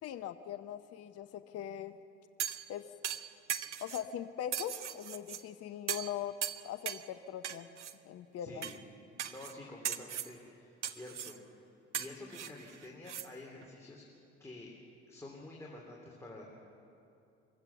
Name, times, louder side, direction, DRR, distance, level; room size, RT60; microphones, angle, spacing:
voice 1, 0.0-2.0 2.7-2.8 3.8-6.3 6.6-7.7 8.0-8.7, left 10 dB, 45° left, 11 dB, 0.8 m, -41 dB
sound 1, 2.4-2.7 3.0-4.1 4.5-5.4 5.9-6.1 6.4-7.1 7.4-7.9 8.6-8.8 9.2-9.5 9.8-10.3 10.8-11.4 11.9-13.3 13.6-13.7, right 9 dB, 90° right, 0.5 m, -38 dB
voice 2, 8.4-8.8 9.3-11.3 11.9-14.0 14.4-14.7 15.1-16.5, left 2 dB, 10° left, -3 dB, 3.0 m, -49 dB
24.0 x 15.0 x 7.1 m, 2.7 s
figure-of-eight pair, 55°, 35 cm